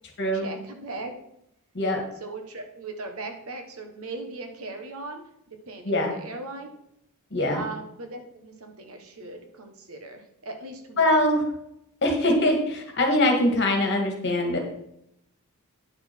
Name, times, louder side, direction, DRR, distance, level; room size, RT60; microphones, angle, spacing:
voice 1, 0.3-1.1 2.2-6.7 7.5-11.2, right 2 dB, 70° right, 4 dB, 1.4 m, -38 dB
voice 2, 7.3-7.6 11.0-11.4 12.0-14.6, left 1 dB, 50° left, 2 dB, 1.8 m, -22 dB
9.5 x 5.9 x 4.6 m, 0.77 s
head